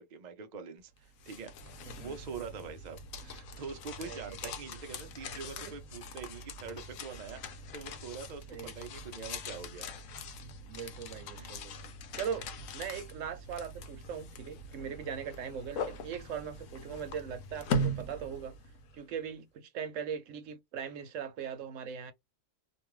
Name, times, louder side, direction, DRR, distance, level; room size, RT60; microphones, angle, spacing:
voice 1, 0.0-1.5 2.0-9.9 11.3-11.6, right 5 dB, 55° right, 0.5 m, -44 dB
sound 1, 1.0-19.0, left 1 dB, 90° left, 1.0 m, -41 dB
voice 2, 1.8-2.2 4.0-4.2 5.6-5.7 8.5-8.7 10.7-11.7 12.1-12.5 12.7-18.5 18.9-22.1, right 7 dB, 75° right, 1.0 m, -40 dB
2.6 x 2.3 x 3.0 m
omnidirectional pair, 1.4 m